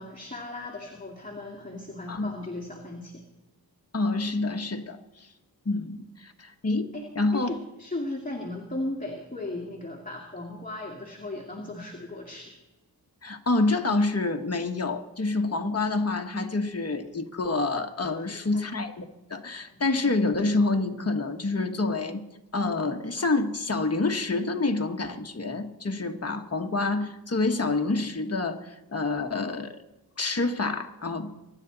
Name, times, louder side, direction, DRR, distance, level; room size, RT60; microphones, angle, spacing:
voice 1, 0.0-3.2 6.9-7.1 7.3-12.5 18.3-18.6 19.5-19.8, left 2 dB, 20° left, -1 dB, 2.2 m, -37 dB
voice 2, 3.9-5.3 5.6-7.5 13.2-19.0 19.3-22.2 22.5-29.8 30.2-31.4, left 3 dB, 40° left, 4 dB, 1.3 m, -27 dB
24.0 x 11.0 x 4.0 m, 1.0 s
wide cardioid pair, 75°, 38 cm